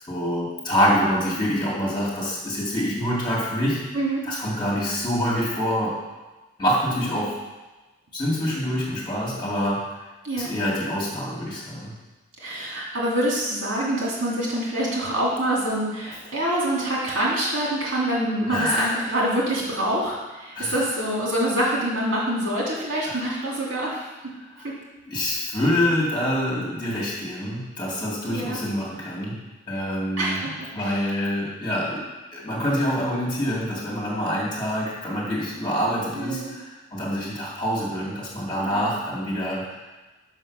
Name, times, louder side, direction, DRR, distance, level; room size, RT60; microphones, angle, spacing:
voice 1, 0.1-3.8 4.3-6.0 6.6-7.4 8.1-10.1 10.4-11.9 18.5-19.0 20.5-20.7 23.0-23.2 24.5-24.7 25.1-30.4 30.7-32.1 32.3-39.8, equal, 25° left, -6 dB, 2.2 m, -26 dB
voice 2, 3.9-4.2 10.2-10.5 12.4-24.1 24.6-24.8 28.3-28.6 30.2-31.0 36.2-36.5 38.6-38.9, right 1 dB, 90° right, -4 dB, 2.7 m, -26 dB
5.7 x 5.3 x 6.4 m, 1.2 s
head